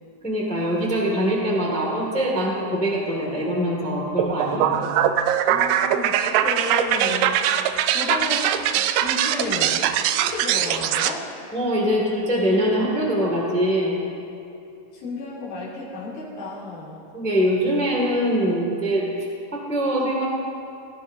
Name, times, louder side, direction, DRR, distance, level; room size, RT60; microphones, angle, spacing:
voice 1, 0.2-4.9 11.5-14.0 17.1-19.0 19.5-20.2, equal, 5° left, -2 dB, 0.9 m, -23 dB
sound 1, 4.2-11.1, right 10 dB, 90° right, 2.3 m, -22 dB
voice 2, 5.5-7.4 7.9-9.9 10.1-11.3 14.9-17.0, left 3 dB, 65° left, -9 dB, 4.3 m, -32 dB
18.0 x 16.0 x 2.7 m, 2.6 s
omnidirectional pair, 4.0 m